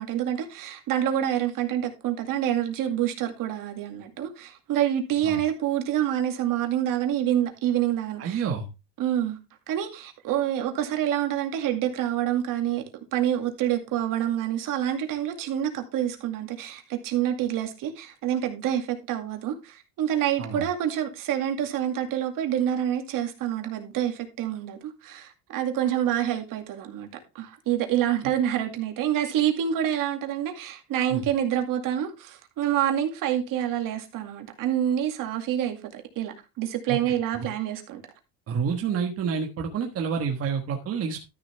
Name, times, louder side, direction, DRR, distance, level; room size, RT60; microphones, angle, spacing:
voice 1, 0.0-8.4 9.0-9.4 9.7-12.8 13.1-27.1 27.3-38.0, right 11 dB, 60° right, 2.3 m, -27 dB
voice 2, 8.2-8.7 20.4-20.6 31.1-31.2 36.9-37.0 37.3-37.5 38.5-41.2, right 6 dB, 40° right, 1.5 m, -28 dB
12.5 x 6.8 x 3.4 m
cardioid pair, 145°, 38 cm